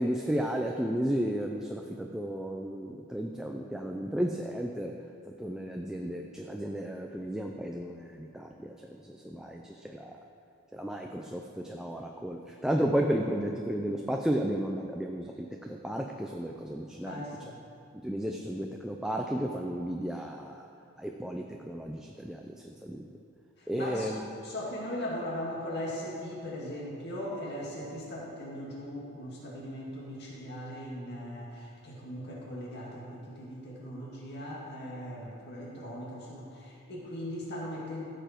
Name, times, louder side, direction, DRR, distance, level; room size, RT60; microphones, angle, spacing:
voice 1, 0.0-4.9 5.4-10.2 10.7-17.2 18.0-20.7 21.0-23.1 23.7-24.2, equal, 5° right, 2 dB, 0.4 m, -33 dB
voice 2, 17.1-17.6 23.6-24.1 24.4-38.0, equal, 50° left, -4 dB, 2.2 m, -39 dB
15.0 x 6.9 x 4.5 m, 2.5 s
head